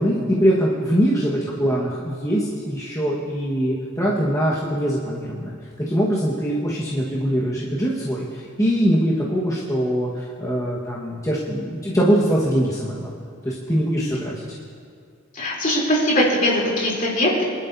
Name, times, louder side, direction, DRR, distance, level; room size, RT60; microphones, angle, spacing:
voice 1, 0.0-5.5 5.9-13.1 13.4-14.3, equal, 15° left, -7 dB, 1.5 m, -22 dB
voice 2, 15.3-17.4, left 1 dB, 45° left, -5 dB, 3.5 m, -20 dB
25.5 x 12.0 x 2.8 m, 2.3 s
head